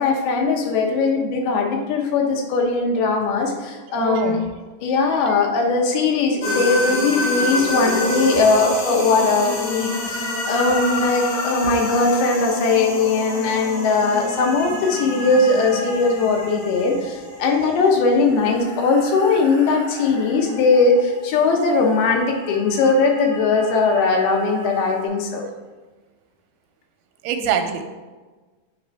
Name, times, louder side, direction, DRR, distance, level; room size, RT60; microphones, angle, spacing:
voice 1, 0.0-4.4 4.8-25.5, left 4 dB, 85° left, 1 dB, 2.9 m, -19 dB
voice 2, 3.9-4.4 5.3-5.4 27.2-27.8, right 7 dB, 90° right, 6 dB, 2.5 m, -24 dB
sound 1, 6.4-25.0, left 1 dB, 60° left, 2.5 m, -29 dB
7.7 x 3.3 x 4.6 m, 1.3 s
omnidirectional pair, 4.3 m